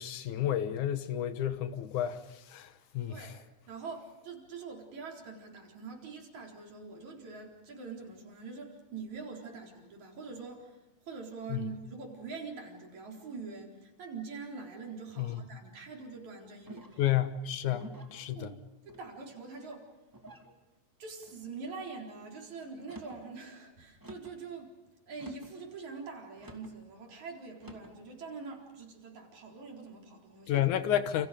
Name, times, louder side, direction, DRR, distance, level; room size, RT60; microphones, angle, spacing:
voice 1, 0.0-2.2 2.5-2.7 2.9-3.3 11.5-11.6 15.2-15.4 17.0-18.5 30.5-31.3, left 11 dB, 90° left, 2.8 m, -31 dB
voice 2, 3.1-3.4 3.7-17.0 17.6-17.7 18.4-18.6 18.9-19.9 21.0-24.7 25.1-30.6, right 4 dB, 75° right, 5.5 m, -44 dB
sound 1, 16.7-17.1 17.8-18.2 18.9-19.4 20.1-20.5 21.2-21.6 22.8-23.2 24.0-24.4 25.1-25.6 26.4-26.8 27.6-28.0, equal, 5° right, 2.1 m, -50 dB
29.0 x 29.0 x 5.1 m
omnidirectional pair, 3.3 m